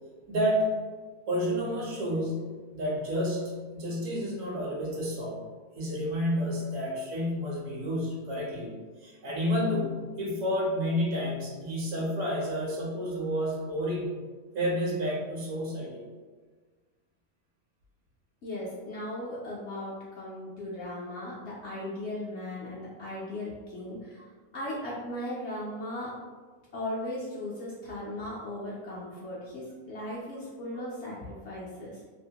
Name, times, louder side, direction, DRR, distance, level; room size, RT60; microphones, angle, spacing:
voice 1, 0.3-0.7 1.3-5.4 5.7-8.7 9.0-14.1 14.5-16.1, equal, 70° right, -3 dB, 1.0 m, -30 dB
voice 2, 18.4-26.1 26.7-32.1, left 1 dB, 65° left, -6 dB, 0.7 m, -37 dB
2.8 x 2.1 x 2.7 m, 1.4 s
omnidirectional pair, 1.5 m